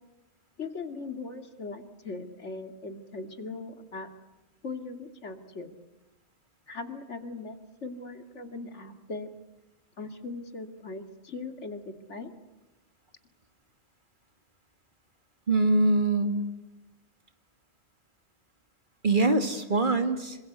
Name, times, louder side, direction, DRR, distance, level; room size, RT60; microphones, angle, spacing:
voice 1, 0.6-4.1 4.6-5.8 6.7-9.3 10.0-12.3, left 3 dB, 85° left, 6 dB, 2.7 m, -39 dB
voice 2, 15.5-16.4 19.0-20.4, right 2 dB, 45° right, 6 dB, 2.5 m, -23 dB
27.0 x 25.5 x 8.1 m, 1.0 s
omnidirectional pair, 1.2 m